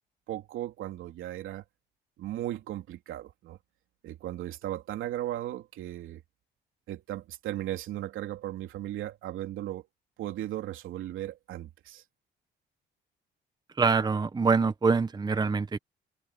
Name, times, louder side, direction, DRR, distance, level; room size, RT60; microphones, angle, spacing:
voice 1, 0.3-1.6 2.2-3.6 4.0-6.2 6.9-9.8 10.2-12.0, right 13 dB, 85° right, 3.1 m, -36 dB
voice 2, 13.8-15.8, right 4 dB, 20° right, 0.8 m, -25 dB
cardioid pair, 90°, 20 cm